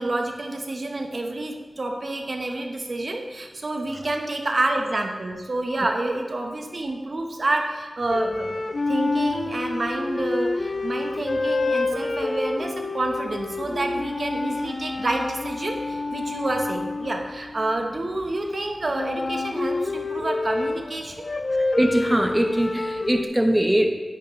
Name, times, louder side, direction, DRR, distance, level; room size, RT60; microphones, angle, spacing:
voice 1, 0.0-8.6 8.9-21.2, right 2 dB, 50° right, 3 dB, 1.1 m, -28 dB
sound 1, 8.1-18.3 18.9-23.2, left 3 dB, 50° left, 0.3 m, -28 dB
voice 2, 21.8-23.9, right 1 dB, 10° right, 4 dB, 0.8 m, -21 dB
10.5 x 8.9 x 3.2 m, 1.3 s
wide cardioid pair, 90°, 0 cm